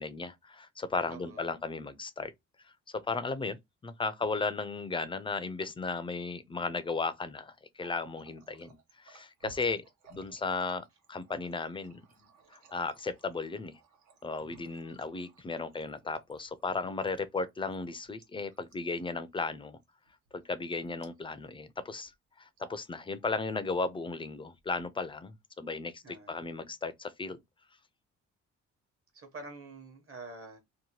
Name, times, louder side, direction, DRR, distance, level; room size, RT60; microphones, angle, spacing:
voice 1, 0.0-2.3 2.9-9.8 10.1-12.0 12.5-13.8 14.2-19.8 20.3-22.1 22.4-27.4, left 4 dB, 20° left, 0.4 m, -35 dB
voice 2, 1.1-1.6 26.0-26.5 29.1-30.6, right 3 dB, 45° right, 1.0 m, -47 dB
Water tap faucet, 7.6-21.6 21.9-22.1 22.5-22.9 23.2-23.9 24.5-25.3, right 4 dB, 75° right, 0.9 m, -59 dB
2.8 x 2.1 x 2.9 m
cardioid pair, 90°, 30 cm